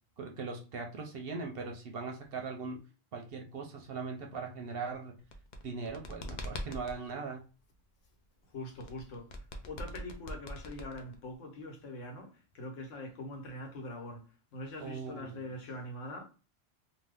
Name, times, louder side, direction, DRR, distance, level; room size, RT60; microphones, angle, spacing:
voice 1, 0.2-2.8 3.1-5.1 5.6-7.4 14.8-15.4, right 4 dB, 60° right, 0.7 m, -40 dB
sound 1, 5.2-7.0 8.8-11.4, left 1 dB, 60° left, 0.4 m, -42 dB
voice 2, 8.5-16.2, left 1 dB, 80° left, 1.2 m, -43 dB
2.7 x 2.2 x 3.4 m
omnidirectional pair, 1.3 m